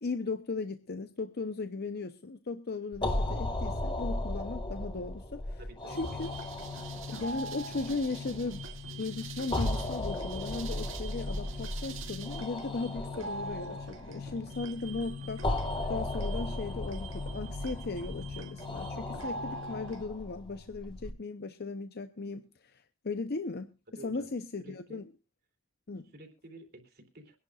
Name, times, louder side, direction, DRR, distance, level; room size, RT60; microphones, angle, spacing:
voice 1, 0.0-5.6 5.9-6.3 7.1-8.6 9.0-15.5 15.9-25.0 25.9-26.0, left 3 dB, 55° left, 0.8 m, -37 dB
sound 1, 2.9-21.1, left 1 dB, 25° left, 2.0 m, -37 dB
voice 2, 5.6-6.0 24.0-24.3 24.6-25.0 26.1-27.4, right 2 dB, 55° right, 3.2 m, -50 dB
sound 2, 5.9-20.0, left 1 dB, 85° right, 2.2 m, -42 dB
24.0 x 11.0 x 2.4 m
head